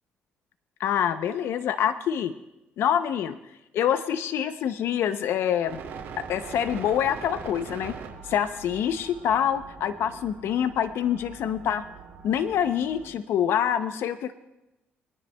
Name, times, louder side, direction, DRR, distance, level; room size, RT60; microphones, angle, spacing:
voice 1, 0.8-2.3 2.8-3.3 3.7-5.8 6.3-7.9 8.2-11.8 12.2-14.3, left 9 dB, 75° left, 11 dB, 0.5 m, -26 dB
sound 1, 5.7-13.1, right 6 dB, 80° right, 2.3 m, -42 dB
24.5 x 10.0 x 2.2 m, 0.96 s
cardioid pair, 95°, 4 cm